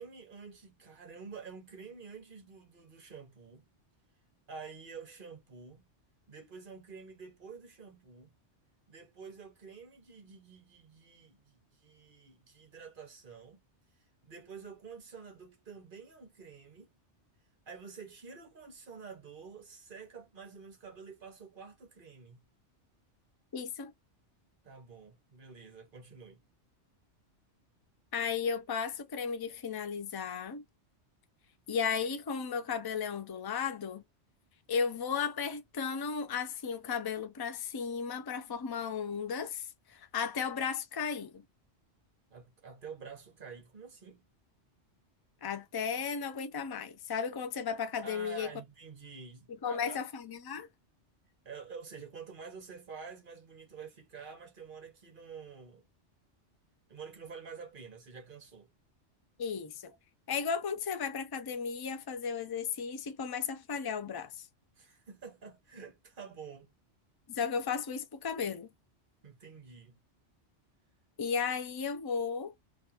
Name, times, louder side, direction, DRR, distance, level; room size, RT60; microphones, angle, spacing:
voice 1, 0.0-3.6 4.5-5.9 6.3-8.3 8.9-13.6 14.2-16.9 17.7-22.4 24.6-26.4 42.3-44.2 48.0-50.0 51.4-55.8 56.9-58.7 64.8-66.7 69.2-70.0, right 5 dB, 50° right, 1.1 m, -49 dB
voice 2, 23.5-23.9 28.1-30.6 31.7-34.0 34.7-41.4 45.4-48.5 49.5-50.7 59.4-59.9 60.3-64.5 67.3-68.7 71.2-72.5, left 6 dB, 40° left, 0.3 m, -35 dB
3.2 x 2.5 x 2.8 m
omnidirectional pair, 1.2 m